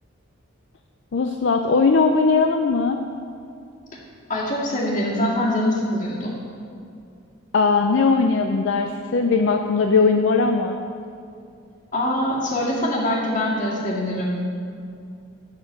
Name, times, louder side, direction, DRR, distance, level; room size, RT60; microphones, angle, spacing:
voice 1, 1.1-3.0 7.5-10.8, left 4 dB, 60° left, 4 dB, 0.5 m, -19 dB
voice 2, 4.3-6.3 11.9-14.4, left 1 dB, 40° left, -5 dB, 2.0 m, -23 dB
11.5 x 4.5 x 7.3 m, 2.4 s
head